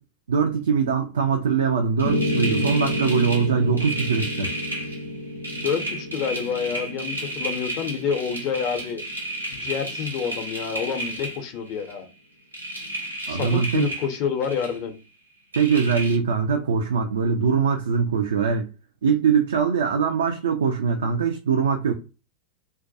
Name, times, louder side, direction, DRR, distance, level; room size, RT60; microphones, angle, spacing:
voice 1, 0.3-4.6 13.3-13.9 15.5-18.7 19.0-21.9, right 6 dB, 65° right, 0.3 m, -22 dB
Piano, 2.0-10.1, left 1 dB, 85° left, 0.5 m, -31 dB
sound 1, 2.0-12.0 12.5-14.9 15.5-16.2, right 1 dB, 85° right, 0.8 m, -33 dB
voice 2, 5.5-9.0 9.5-12.1 13.2-14.9, left 7 dB, 40° left, 0.5 m, -28 dB
2.3 x 2.1 x 2.6 m
figure-of-eight pair, 90°, 0 cm